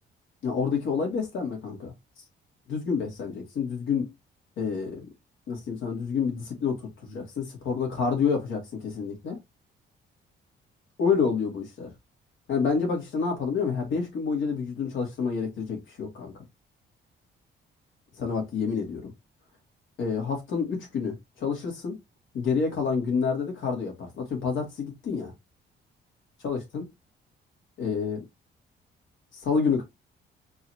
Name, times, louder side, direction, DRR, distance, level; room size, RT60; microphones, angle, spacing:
voice 1, 0.4-1.9 2.7-4.1 4.6-5.1 5.5-9.4 11.0-11.9 12.5-16.4 18.2-19.1 20.0-21.9 22.3-25.3 26.4-26.9 27.8-28.2 29.3-29.8, left 5 dB, 75° left, 2.4 m, -28 dB
4.6 x 3.0 x 2.9 m
cardioid pair, 90°, 20 cm